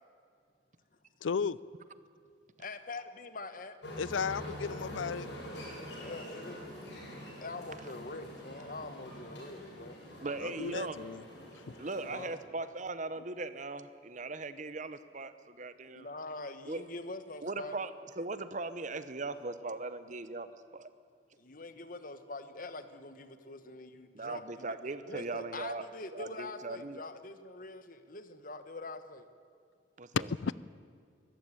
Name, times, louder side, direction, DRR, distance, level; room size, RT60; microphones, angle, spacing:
voice 1, 1.2-1.6 4.0-5.3 10.4-11.2 30.1-30.5, left 6 dB, 90° left, 20 dB, 0.5 m, -34 dB
voice 2, 2.6-3.8 6.0-6.6 7.4-10.0 12.1-12.3 15.9-17.8 21.4-24.6 25.1-29.3, left 2 dB, 45° left, 10 dB, 1.3 m, -44 dB
sound 1, 3.8-12.3, equal, 65° left, 7.8 m, -45 dB
voice 3, 10.2-11.0 11.8-16.1 16.7-16.8 17.4-17.9 18.2-20.5 20.7-20.9 24.1-25.8 26.1-27.0 30.0-30.3, right 3 dB, 40° right, 13 dB, 0.9 m, -39 dB
23.0 x 14.0 x 9.9 m, 2.2 s
head